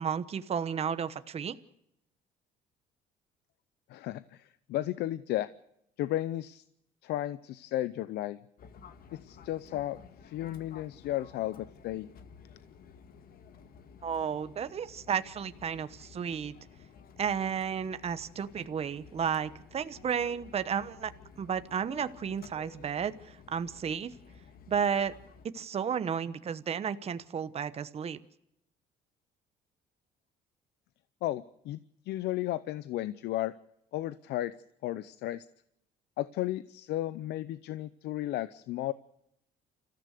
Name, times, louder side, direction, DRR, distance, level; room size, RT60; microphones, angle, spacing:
voice 1, 0.0-1.6 14.0-16.5 17.2-21.1 21.4-24.1 24.7-25.1 25.5-28.2, right 7 dB, 35° right, 12 dB, 1.0 m, -32 dB
voice 2, 3.9-5.5 6.0-6.6 7.0-8.4 9.1-12.1 31.2-31.8 32.1-33.5 33.9-34.5 34.8-35.5 36.2-38.9, left 14 dB, 75° left, 16 dB, 0.7 m, -34 dB
Fixed-wing aircraft airplane, 8.6-25.5, left 6 dB, 60° left, 1.9 m, -54 dB
28.5 x 14.5 x 6.6 m, 0.77 s
cardioid pair, 110°, 17 cm